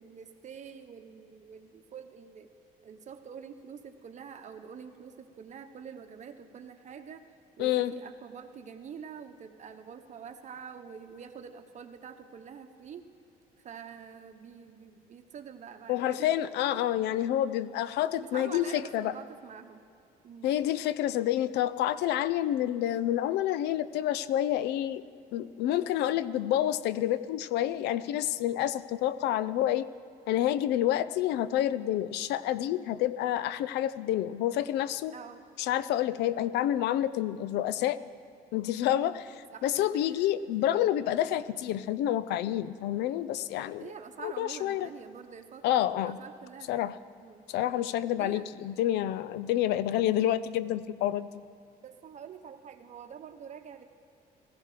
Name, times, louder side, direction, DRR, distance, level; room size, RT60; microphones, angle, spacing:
voice 1, 0.0-2.5 2.8-7.3 7.6-13.1 13.6-16.9 18.2-19.8 20.2-20.5 26.0-26.2 35.1-35.4 39.0-39.2 39.5-40.3 43.8-47.4 48.2-48.5 51.8-53.8, right 7 dB, 45° right, 7 dB, 1.2 m, -46 dB
voice 2, 7.6-7.9 15.9-19.1 20.4-25.0 25.3-29.9 30.3-35.1 35.6-38.0 38.5-39.3 39.6-43.9 44.2-44.9 45.6-46.2 46.7-46.9 47.5-51.3, left 12 dB, 80° left, 16 dB, 0.5 m, -28 dB
16.5 x 15.5 x 5.0 m, 2.5 s
cardioid pair, 110°, 17 cm